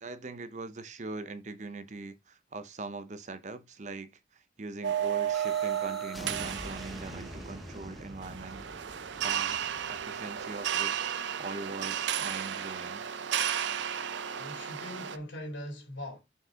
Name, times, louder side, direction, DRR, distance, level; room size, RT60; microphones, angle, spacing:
voice 1, 0.0-8.6 9.2-13.0, right 3 dB, 40° right, 0.7 m, -42 dB
sound 1, 4.8-7.9 8.2-15.2, right 9 dB, 75° right, 0.5 m, -33 dB
sound 2, 5.3-11.1, left 1 dB, ahead, 0.8 m, -45 dB
voice 2, 14.3-16.2, left 1 dB, 80° left, 3.0 m, -41 dB
6.3 x 4.6 x 3.7 m
head